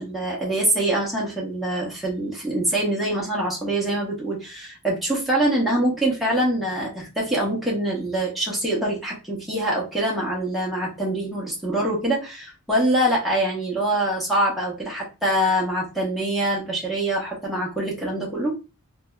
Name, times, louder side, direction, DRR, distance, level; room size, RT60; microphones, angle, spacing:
voice 1, 0.0-18.6, right 1 dB, ahead, -5 dB, 1.1 m, -24 dB
3.2 x 2.8 x 2.3 m, 0.28 s
head